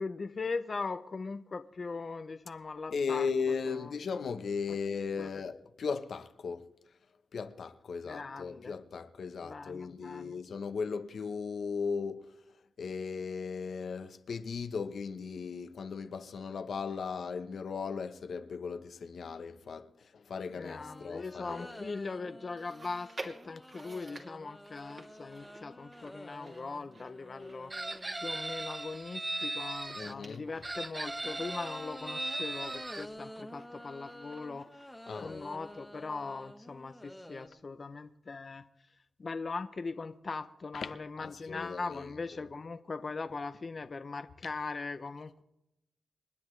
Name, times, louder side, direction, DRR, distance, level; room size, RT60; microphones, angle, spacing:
voice 1, 0.0-3.3 3.7-3.9 4.7-4.8 5.2-5.4 8.0-8.7 9.4-10.4 20.5-27.7 28.2-38.6 39.2-45.4, left 4 dB, 40° left, 0.7 m, -40 dB
voice 2, 2.9-6.7 7.3-12.3 12.8-21.8 29.9-30.5 35.1-35.4 40.7-42.1, left 5 dB, 70° left, 1.0 m, -37 dB
sound 1, 20.8-28.3 31.2-37.5, left 1 dB, 5° left, 1.2 m, -50 dB
Chewing mastication, 22.6-36.1 36.4-36.5 37.3-37.4, right 2 dB, 40° right, 2.6 m, -53 dB
Chicken rooster, 27.7-30.1 30.6-33.1, right 2 dB, 20° right, 0.5 m, -38 dB
28.0 x 10.5 x 3.3 m
cardioid pair, 95°, 0 cm